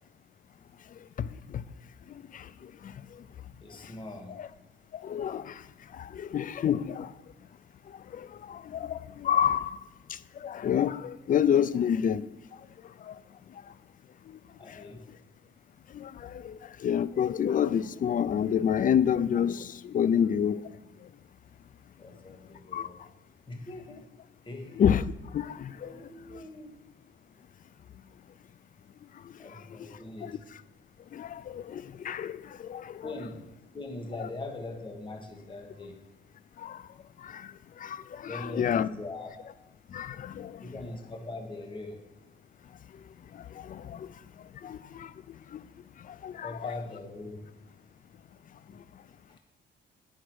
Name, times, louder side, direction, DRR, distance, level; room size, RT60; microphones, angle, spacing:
voice 1, 3.6-4.5 14.6-15.1 22.0-23.1 23.5-24.1 24.4-24.8 25.8-26.7 29.4-30.4 33.0-36.0 38.2-39.3 40.6-42.1 46.4-47.4 49.3-49.4, left 2 dB, 25° left, 1.7 m, -41 dB
voice 2, 5.0-5.5 6.0-7.1 8.2-9.8 10.4-12.3 13.1-13.2 15.9-16.6 16.8-20.6 22.7-22.9 24.8-25.0 25.3-25.9 30.2-30.3 31.1-33.0 34.2-34.3 36.6-36.8 37.2-37.5 37.8-38.9 39.9-40.5 43.6-44.1 44.6-45.1 45.5-45.6 46.2-46.8, left 8 dB, 45° left, 0.4 m, -28 dB
9.6 x 6.3 x 4.7 m
cardioid pair, 90°, 20 cm